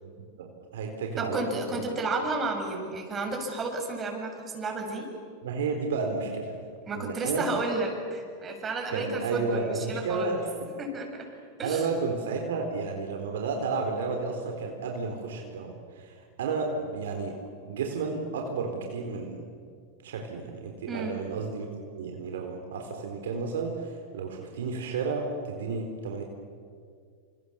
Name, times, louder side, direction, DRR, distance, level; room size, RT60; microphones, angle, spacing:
voice 1, 0.0-1.8 5.4-6.6 6.9-7.5 8.9-10.5 11.6-17.4 17.7-19.4 20.0-21.7 21.9-26.2, right 4 dB, 70° right, 3 dB, 4.1 m, -32 dB
voice 2, 1.2-5.1 6.9-10.4 10.8-11.3 11.6-11.9 20.9-21.2, right 2 dB, 25° right, 3 dB, 7.2 m, -32 dB
28.5 x 27.0 x 7.4 m, 2.1 s
hypercardioid pair, 95°, 0 cm